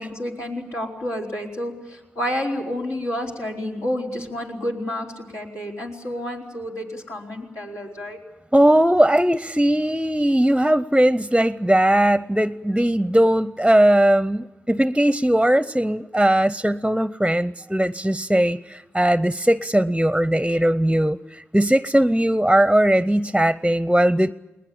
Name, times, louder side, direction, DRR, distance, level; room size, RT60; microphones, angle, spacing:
voice 1, 0.0-8.2, left 1 dB, 85° left, -2 dB, 4.6 m, -30 dB
voice 2, 8.5-24.3, right 1 dB, 5° right, 15 dB, 0.7 m, -19 dB
21.0 x 20.0 x 8.6 m, 1.0 s
cardioid pair, 45°, 5 cm